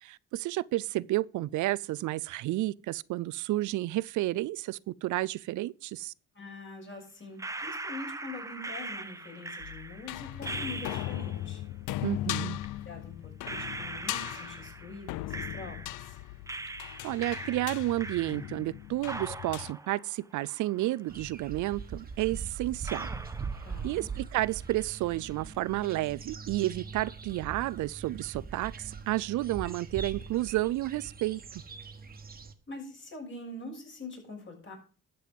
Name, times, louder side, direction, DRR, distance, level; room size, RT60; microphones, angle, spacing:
voice 1, 0.0-6.1 12.0-12.6 17.0-23.1 23.8-31.6, right 17 dB, 75° right, 0.4 m, -31 dB
voice 2, 6.3-11.6 12.2-12.5 12.8-16.2 23.6-24.1 32.7-34.7, left 2 dB, 40° left, 6.2 m, -44 dB
sound 1, 7.4-11.5 12.6-12.7 13.4-16.1 16.5-18.7 19.0-21.1 21.4-21.5 22.2-22.3 22.8-24.2 24.4-25.0, right 2 dB, 10° right, 0.8 m, -41 dB
sound 2, 9.6-19.7, left 15 dB, 90° left, 0.5 m, -38 dB
sound 3, 21.1-32.5, right 5 dB, 30° right, 1.4 m, -42 dB
12.0 x 7.7 x 5.2 m
cardioid pair, 90°, 30 cm